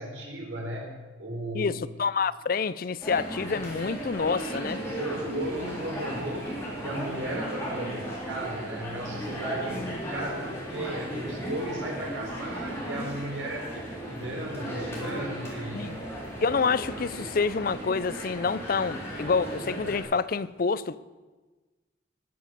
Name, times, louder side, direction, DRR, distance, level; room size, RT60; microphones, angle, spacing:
voice 1, 0.0-1.8 4.7-16.0, right 1 dB, 85° right, 4.5 m, -35 dB
voice 2, 1.5-4.8 9.7-9.9 15.7-15.9 16.4-21.0, left 5 dB, 50° left, 0.5 m, -28 dB
sound 1, 3.0-20.0, right 1 dB, 15° left, 3.9 m, -36 dB
20.0 x 7.5 x 6.8 m
head